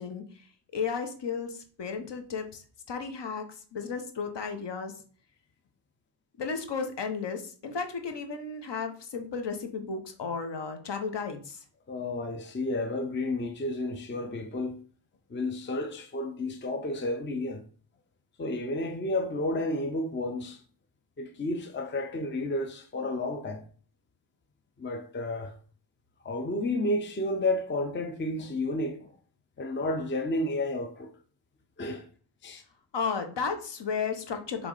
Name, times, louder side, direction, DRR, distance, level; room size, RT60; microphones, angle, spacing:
voice 1, 0.0-5.0 6.4-11.6 32.9-34.7, left 5 dB, 60° left, 1.2 m, -34 dB
voice 2, 11.9-14.8 15.3-17.6 18.4-20.6 21.2-23.7 24.8-25.5 26.2-29.1 29.6-31.2 31.8-32.1 32.4-32.6, left 2 dB, 25° left, 0.6 m, -31 dB
6.1 x 3.6 x 4.9 m
wide cardioid pair, 175°, 48 cm